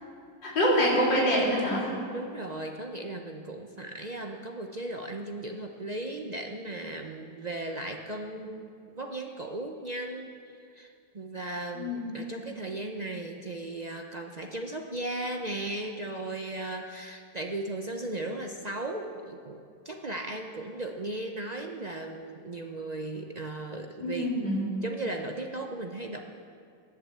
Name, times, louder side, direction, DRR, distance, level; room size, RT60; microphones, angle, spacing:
voice 1, 0.4-1.9 11.7-12.1 12.4-12.5 24.0-24.6, equal, 75° left, -5 dB, 4.4 m, -25 dB
voice 2, 2.1-24.3 24.8-26.2, right 2 dB, 55° right, 2 dB, 0.4 m, -36 dB
14.5 x 10.5 x 7.8 m, 2.4 s
omnidirectional pair, 2.0 m